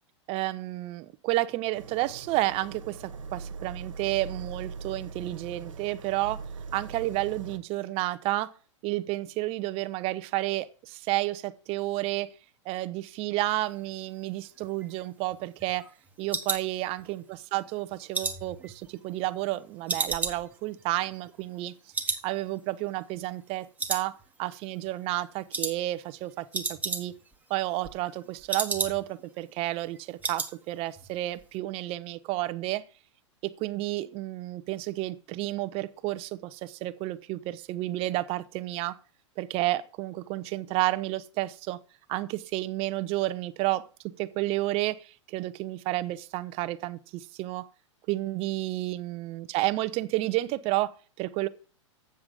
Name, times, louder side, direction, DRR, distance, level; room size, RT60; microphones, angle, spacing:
voice 1, 0.3-6.4 6.7-8.5 8.8-12.3 12.7-15.8 16.2-17.2 17.5-21.7 22.2-27.1 27.5-32.8 33.6-39.0 39.4-41.8 42.1-43.9 44.2-47.7 48.1-51.5, right 17 dB, 35° right, 0.7 m, -31 dB
sound 1, 1.7-7.6, right 5 dB, 85° right, 1.4 m, -41 dB
sound 2, 14.6-17.4 17.7-19.5 19.9-21.7 21.9-22.3 22.6-22.7 23.1-23.5 23.8-24.6 24.9-25.1 25.5-25.8 26.1-26.2 26.4-27.4 27.7-29.3 29.6-29.7 29.9-30.5 30.8-31.1 31.4-31.5, right 4 dB, 10° right, 1.2 m, -33 dB
7.7 x 7.1 x 5.0 m
hypercardioid pair, 110°, 16 cm